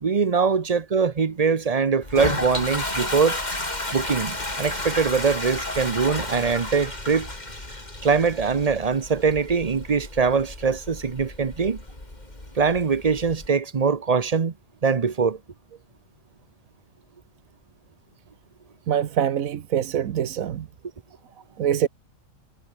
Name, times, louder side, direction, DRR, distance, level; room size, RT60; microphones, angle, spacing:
voice 1, 0.0-3.4 3.9-7.3 8.0-11.8 12.6-14.5 14.8-15.4, right 5 dB, 35° right, 0.8 m, -22 dB
Toilet flush, 2.0-13.5, left 1 dB, 30° left, 4.2 m, -32 dB
voice 2, 18.9-20.7 21.6-21.9, right 9 dB, 80° right, 1.4 m, -24 dB
omnidirectional pair, 1.4 m